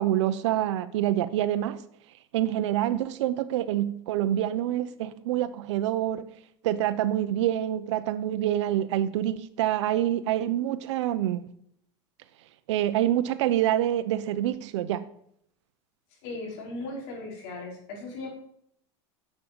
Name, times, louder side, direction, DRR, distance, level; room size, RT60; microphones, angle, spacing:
voice 1, 0.0-1.8 2.3-6.3 6.6-11.4 12.7-15.1, right 12 dB, 80° right, 0.8 m, -26 dB
voice 2, 16.2-18.3, left 2 dB, 65° left, 5.3 m, -37 dB
10.5 x 7.3 x 7.0 m
supercardioid pair, 145°, 15 cm